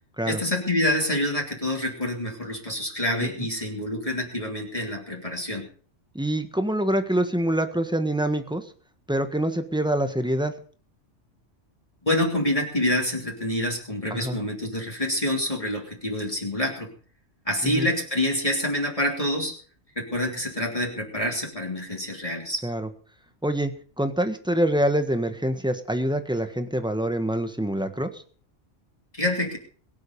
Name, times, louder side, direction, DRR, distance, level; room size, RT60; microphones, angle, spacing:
voice 1, 0.3-5.7 12.0-16.9 17.5-19.5 20.0-22.6 29.2-29.6, left 1 dB, 30° left, -1 dB, 3.2 m, -27 dB
voice 2, 6.1-8.6 9.1-10.5 14.1-14.4 17.6-17.9 22.6-22.9 23.4-23.7 24.0-28.2, right 1 dB, 5° right, 8 dB, 1.4 m, -25 dB
22.5 x 7.9 x 5.4 m, 0.43 s
omnidirectional pair, 1.2 m